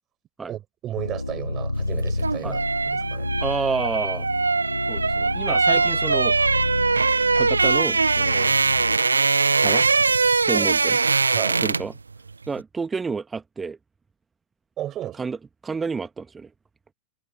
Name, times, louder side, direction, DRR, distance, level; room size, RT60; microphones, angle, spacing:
voice 1, 0.5-3.3 10.5-10.7 11.3-11.6 14.8-15.3, right 12 dB, 30° right, 5.5 m, -34 dB
sound 1, 1.0-9.0, left 2 dB, 85° left, 3.5 m, -30 dB
sound 2, 2.0-12.0 12.3-12.5, right 4 dB, 80° right, 0.5 m, -21 dB
voice 2, 3.4-4.3 4.9-6.4 7.3-8.5 9.6-9.9 10.5-11.0 11.6-11.9 12.5-13.8 15.2-15.4 15.6-16.5, right 5 dB, 15° right, 2.0 m, -29 dB
figure-of-eight pair, 90°, 0 cm